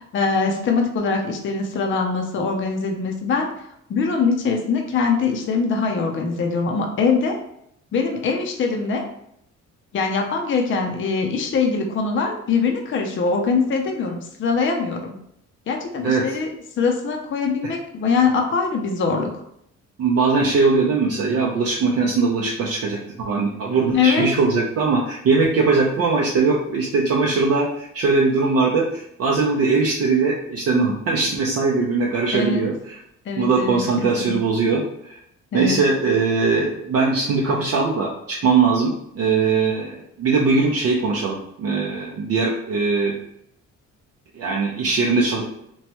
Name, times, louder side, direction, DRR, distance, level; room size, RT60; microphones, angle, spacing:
voice 1, 0.1-3.5 3.9-7.4 7.9-9.0 9.9-15.1 15.7-16.5 16.8-19.3 23.9-24.3 32.3-32.6 33.3-34.4 35.5-35.8, left 5 dB, 40° left, 2 dB, 0.5 m, -22 dB
voice 2, 20.0-33.0 33.4-35.2 35.5-43.1 44.3-45.4, right 4 dB, 55° right, -2 dB, 0.5 m, -20 dB
3.0 x 2.2 x 2.8 m, 0.74 s
cardioid pair, 90°, 30 cm